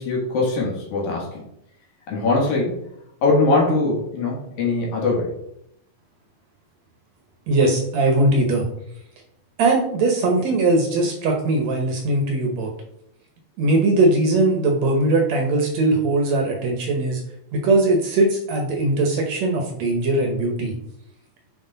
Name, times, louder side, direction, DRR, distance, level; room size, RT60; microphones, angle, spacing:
voice 1, 0.0-1.4 2.1-2.8 3.2-5.3, left 3 dB, 60° left, -3 dB, 2.6 m, -21 dB
voice 2, 7.5-8.7 9.6-12.7 13.6-17.2 17.5-20.8, right 2 dB, 70° right, 2 dB, 1.6 m, -20 dB
8.0 x 3.9 x 3.9 m, 0.78 s
omnidirectional pair, 4.2 m